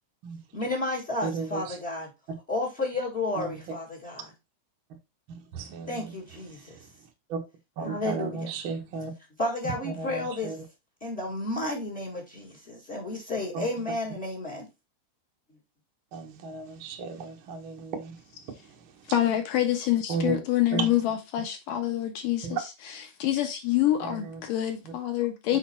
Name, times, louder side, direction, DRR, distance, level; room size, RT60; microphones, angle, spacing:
voice 1, 0.5-2.1 2.5-4.3 5.9-6.7 7.8-8.5 9.4-10.6 11.0-14.6, left 2 dB, 40° left, 0.8 m, -32 dB
voice 2, 1.2-1.8 3.4-3.6 5.5-6.1 7.3-7.4 7.8-9.1 9.6-10.6 13.5-13.6 16.1-18.1 20.1-20.4 20.7-20.9 22.4-22.6 24.1-24.4, right 5 dB, 70° right, 1.2 m, -33 dB
voice 3, 19.1-25.6, left 13 dB, 75° left, 2.2 m, -27 dB
7.1 x 4.3 x 4.3 m
omnidirectional pair, 4.6 m